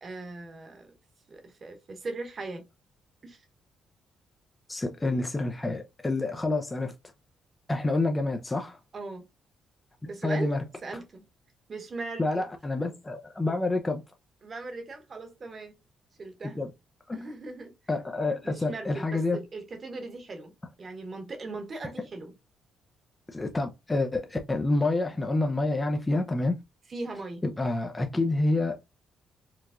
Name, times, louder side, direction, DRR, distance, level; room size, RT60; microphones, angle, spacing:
voice 1, 0.0-0.9 1.3-2.6 3.2-3.4 8.9-9.3 10.0-11.3 11.7-12.5 14.4-15.8 16.2-16.7 17.1-17.7 18.4-20.5 20.8-22.3 26.9-27.4, right 3 dB, 40° right, 1.2 m, -39 dB
voice 2, 4.7-6.9 7.7-8.8 10.2-10.6 12.2-14.0 16.6-16.7 17.1-17.3 17.9-19.4 23.3-26.6 27.4-28.8, left 2 dB, 20° left, 0.5 m, -28 dB
4.6 x 2.3 x 2.4 m
cardioid pair, 90°, 0 cm